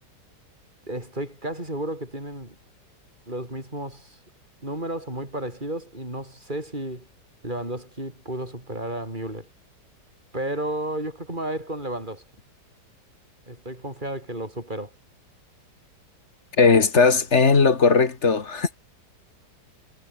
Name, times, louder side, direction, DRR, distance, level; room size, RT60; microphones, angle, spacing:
voice 1, 0.9-2.6 3.3-4.2 4.6-7.1 7.4-9.5 10.3-12.2 13.5-14.9, right 1 dB, 25° right, 8.2 m, -32 dB
voice 2, 16.6-18.8, left 4 dB, 40° left, 2.2 m, -18 dB
omnidirectional pair, 1.9 m